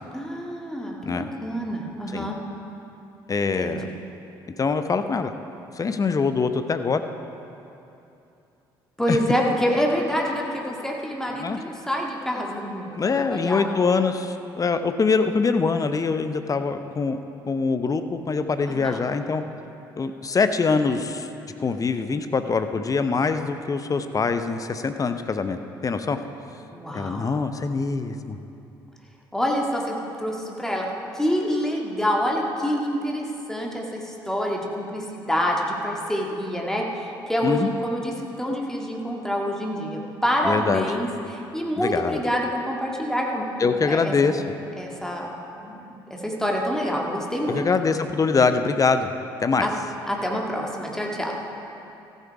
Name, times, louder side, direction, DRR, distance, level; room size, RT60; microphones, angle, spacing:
voice 1, 0.1-2.4 3.5-3.8 9.0-12.9 13.2-13.9 18.7-19.0 26.7-27.3 29.3-30.9 31.1-44.3 44.8-47.7 49.6-49.7 50.1-51.3, equal, 5° left, -1 dB, 2.0 m, -27 dB
voice 2, 3.3-3.9 4.6-5.3 5.7-7.0 9.1-9.2 11.4-11.6 13.0-17.2 17.5-19.4 20.0-21.3 21.6-26.2 26.9-28.4 37.4-37.7 40.4-40.9 41.8-42.2 43.6-44.4 47.5-49.1 49.4-49.7, left 4 dB, 30° left, 9 dB, 0.7 m, -24 dB
14.5 x 8.3 x 4.8 m, 2.8 s
figure-of-eight pair, 50°, 12 cm